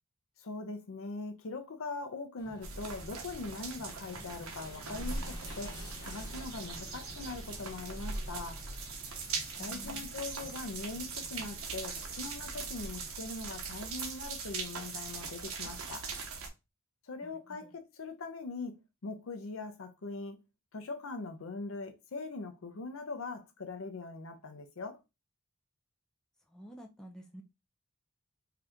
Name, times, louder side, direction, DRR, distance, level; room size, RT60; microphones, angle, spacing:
voice 1, 0.4-8.6 9.6-16.1 17.0-20.4 20.7-25.0, left 3 dB, 75° left, 0.6 m, -41 dB
sound 1, 2.4-13.1, left 1 dB, 20° left, 1.0 m, -52 dB
sound 2, 2.6-16.5, right 4 dB, 90° right, 0.7 m, -40 dB
voice 2, 9.6-10.2 17.2-17.7 26.5-27.4, right 1 dB, 5° left, 0.4 m, -51 dB
2.8 x 2.4 x 3.4 m
head